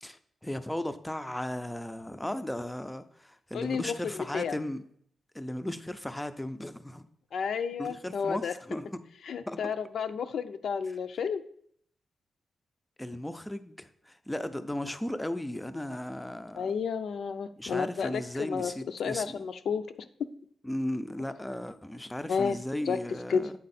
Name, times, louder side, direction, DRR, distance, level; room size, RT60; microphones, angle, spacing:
voice 1, 0.0-4.8 5.3-7.1 7.8-9.0 9.5-9.7 13.0-16.7 17.6-19.4 20.6-23.5, left 1 dB, 5° left, 0.4 m, -36 dB
voice 2, 3.5-4.6 7.3-8.5 9.2-11.4 16.6-19.8 20.2-20.3 22.3-22.6 22.9-23.0 23.3-23.4, left 6 dB, 70° left, 0.5 m, -31 dB
8.6 x 4.1 x 4.1 m
wide cardioid pair, 145°, 0 cm